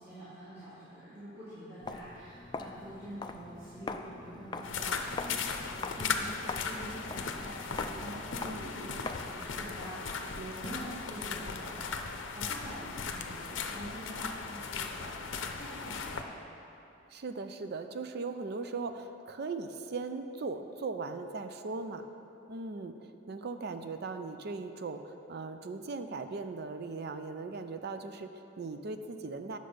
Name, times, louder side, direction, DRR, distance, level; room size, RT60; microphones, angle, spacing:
voice 1, 0.0-5.4 5.7-15.2 15.5-16.3, right 1 dB, 15° right, -15 dB, 2.2 m, -46 dB
Walk footsteps, 1.8-9.4, left 3 dB, 25° left, 0.3 m, -43 dB
sound 1, 4.6-16.2, left 5 dB, 75° left, 0.6 m, -37 dB
voice 2, 8.4-8.7 10.3-10.5 17.1-22.1 22.5-29.6, right 3 dB, 55° right, 8 dB, 0.5 m, -39 dB
9.8 x 6.6 x 5.1 m, 2.9 s
head